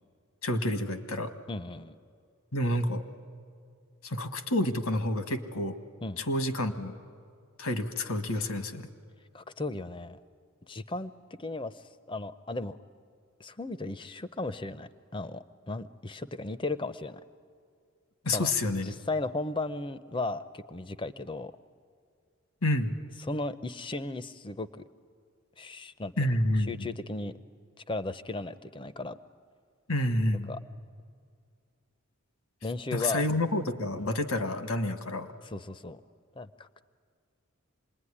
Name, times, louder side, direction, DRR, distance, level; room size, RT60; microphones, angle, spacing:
voice 1, 0.4-1.3 2.5-3.0 4.0-5.8 6.2-6.9 7.6-8.9 18.2-18.9 22.6-23.0 26.2-26.7 29.9-30.5 32.9-35.3, left 1 dB, 80° left, 8 dB, 1.5 m, -29 dB
voice 2, 1.5-2.0 6.0-6.2 9.3-10.2 10.6-11.1 11.4-12.8 13.4-17.2 18.3-18.5 18.8-21.5 23.2-24.8 25.6-26.3 26.7-27.3 27.9-29.2 30.5-30.6 32.6-33.2 34.0-34.1 35.4-36.0 36.4-36.8, left 2 dB, 20° left, 13 dB, 0.6 m, -36 dB
26.5 x 21.0 x 9.9 m, 2.2 s
head